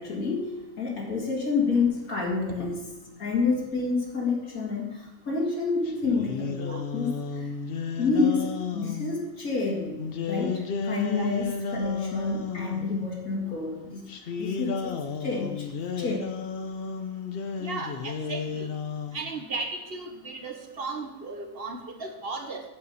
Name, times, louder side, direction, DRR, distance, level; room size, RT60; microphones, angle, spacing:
voice 1, 0.0-7.5 7.9-14.1 14.4-15.7 16.0-16.3, left 4 dB, 80° left, -3 dB, 2.5 m, -29 dB
sound 1, 5.9-9.1 10.0-12.9 14.1-19.3, left 5 dB, 50° left, 0.8 m, -33 dB
voice 2, 17.6-18.7 19.1-22.6, right 3 dB, 45° right, 4 dB, 1.3 m, -35 dB
8.4 x 6.9 x 6.8 m, 1.0 s
omnidirectional pair, 1.5 m